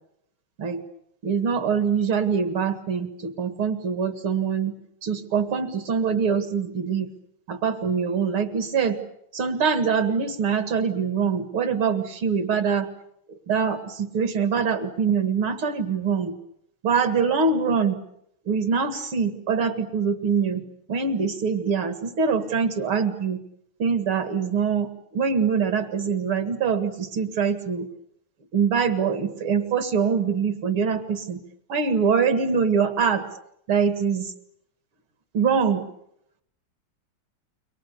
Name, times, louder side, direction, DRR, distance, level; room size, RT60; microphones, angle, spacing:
voice 1, 1.2-4.7 5.0-7.1 7.5-9.0 9.3-12.9 13.5-16.3 16.8-17.9 18.5-20.6 20.9-23.4 23.8-27.9 28.5-31.4 31.7-33.3 33.7-34.3 35.3-35.8, right 6 dB, 75° right, 10 dB, 2.8 m, -24 dB
28.5 x 23.5 x 6.8 m, 0.74 s
omnidirectional pair, 2.3 m